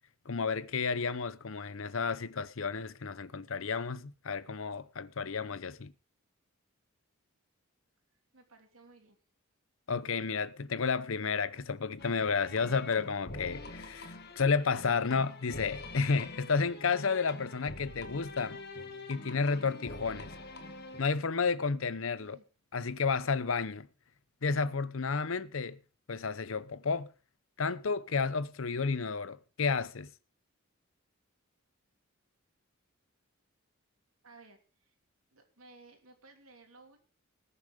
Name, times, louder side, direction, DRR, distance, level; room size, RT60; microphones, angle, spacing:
voice 1, 0.3-5.9 9.9-18.6 19.1-20.3 21.0-22.4 22.7-23.9 24.4-25.8 26.1-27.1 27.6-30.1, left 5 dB, 70° left, 0.7 m, -31 dB
voice 2, 8.3-9.2 22.2-22.4 34.2-34.9 35.3-37.0, right 3 dB, 80° right, 3.3 m, -57 dB
sound 1, 12.0-21.0, left 2 dB, 50° left, 1.9 m, -45 dB
19.5 x 7.0 x 5.1 m
head